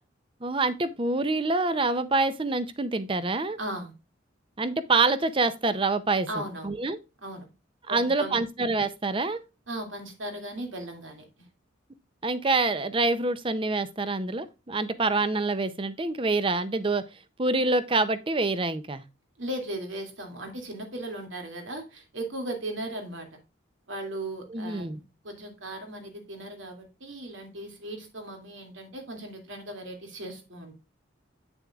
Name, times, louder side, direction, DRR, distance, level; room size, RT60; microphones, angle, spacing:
voice 1, 0.4-3.6 4.6-6.3 6.6-7.0 7.9-9.4 12.2-17.0 17.4-19.0 24.5-25.0, right 3 dB, 25° right, 0.6 m, -26 dB
voice 2, 3.6-3.9 6.3-6.7 7.2-7.5 7.9-8.4 9.7-11.5 19.4-23.3 23.9-30.8, right 1 dB, 75° right, 2.4 m, -37 dB
8.4 x 7.1 x 2.4 m
head